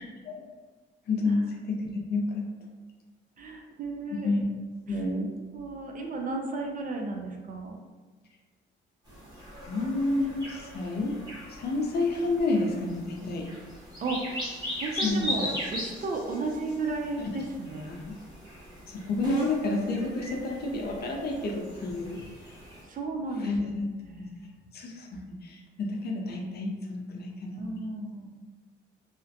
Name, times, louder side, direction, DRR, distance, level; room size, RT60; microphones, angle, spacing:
voice 1, 1.1-2.5 4.1-4.4 4.9-5.3 9.6-11.2 11.5-13.5 15.0-15.3 17.2-17.3 17.9-18.2 18.9-22.2 23.4-23.9 24.2-24.3 24.7-27.6, left 2 dB, 55° left, 1 dB, 0.5 m, -30 dB
voice 2, 3.4-4.4 5.5-7.8 14.0-17.9 22.9-24.6 27.6-28.3, right 3 dB, 45° right, 1 dB, 0.4 m, -34 dB
sound 1, 9.1-22.8, left 1 dB, 20° right, 1.1 m, -39 dB
2.4 x 2.1 x 2.6 m, 1.3 s
cardioid pair, 90°, 20 cm